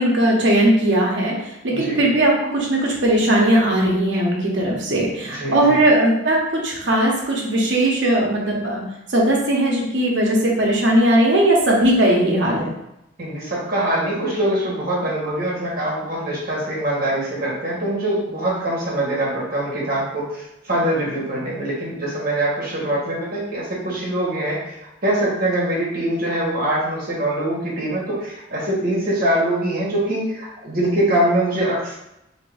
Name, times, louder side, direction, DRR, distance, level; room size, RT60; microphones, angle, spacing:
voice 1, 0.0-1.3 1.6-8.8 9.1-12.7, right 1 dB, 70° right, -2 dB, 0.9 m, -18 dB
voice 2, 1.7-2.0 5.1-5.8 13.2-24.8 25.0-32.0, right 1 dB, 50° right, -5 dB, 1.1 m, -23 dB
2.8 x 2.6 x 3.4 m, 0.87 s
head